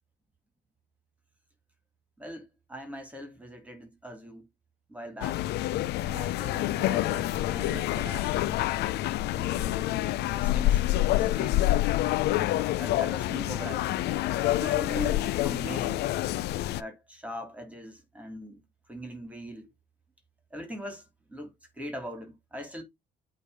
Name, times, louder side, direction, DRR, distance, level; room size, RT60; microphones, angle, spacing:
voice 1, 2.2-4.5 4.9-5.4 6.0-8.6 8.9-11.6 12.3-14.0 14.6-16.0 16.7-18.6 18.9-19.7 20.5-21.0 21.3-22.8, equal, 10° right, 2.9 m, -41 dB
sound 1, 5.2-16.8, left 15 dB, 80° left, 0.6 m, -27 dB
sound 2, 8.0-8.3 9.0-9.2 10.0-10.3 11.0-11.2 11.5-11.7 12.0-12.2 12.5-15.0, right 8 dB, 35° left, 4.5 m, -56 dB
8.5 x 3.3 x 5.4 m
cardioid pair, 110°, 17 cm